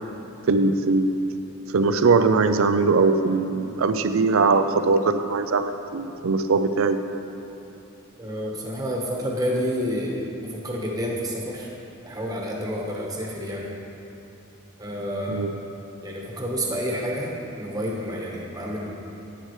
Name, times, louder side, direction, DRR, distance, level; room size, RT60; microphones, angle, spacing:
voice 1, 0.5-1.2 1.7-7.0 15.3-15.6, right 4 dB, 70° right, 10 dB, 0.5 m, -21 dB
voice 2, 8.2-11.7 12.0-13.7 14.8-15.5 16.0-19.0, equal, 20° right, -2 dB, 1.1 m, -29 dB
11.0 x 8.8 x 3.2 m, 2.9 s
head